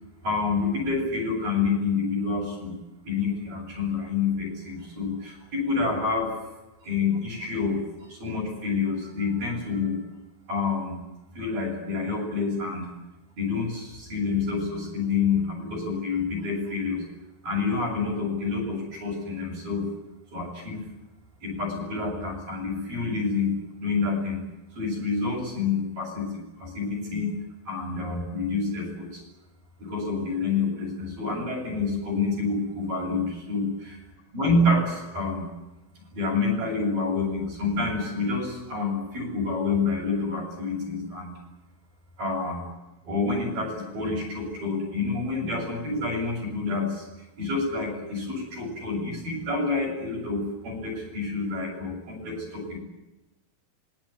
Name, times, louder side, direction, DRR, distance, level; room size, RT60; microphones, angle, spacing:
voice 1, 0.2-2.8 3.1-6.4 6.8-7.8 8.1-10.0 10.5-11.0 11.4-12.9 13.4-17.0 17.4-19.9 20.3-20.8 21.4-24.4 24.8-27.3 27.7-29.2 29.8-34.0 34.3-35.5 36.0-41.3 42.2-42.7 43.0-47.1 47.4-52.8, left 4 dB, 65° right, 2 dB, 9.9 m, -28 dB
25.5 x 21.0 x 9.8 m, 0.99 s
omnidirectional pair, 4.4 m